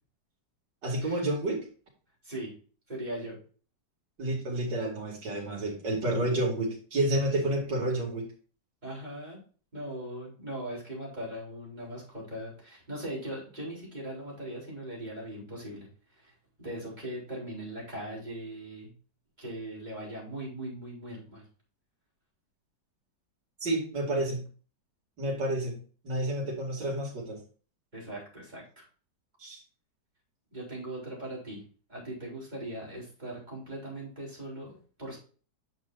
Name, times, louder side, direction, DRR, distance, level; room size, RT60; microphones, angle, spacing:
voice 1, 0.8-1.7 4.2-8.3 23.6-24.4 25.2-25.7 26.0-27.4 29.4-29.6, right 1 dB, 75° right, -1 dB, 3.2 m, -30 dB
voice 2, 2.9-3.4 8.8-9.4 9.7-16.3 16.6-18.9 19.4-21.4 27.9-28.8 30.5-31.6 31.9-35.2, right 1 dB, 25° right, -5 dB, 4.4 m, -40 dB
9.2 x 6.4 x 2.6 m, 0.39 s
omnidirectional pair, 1.9 m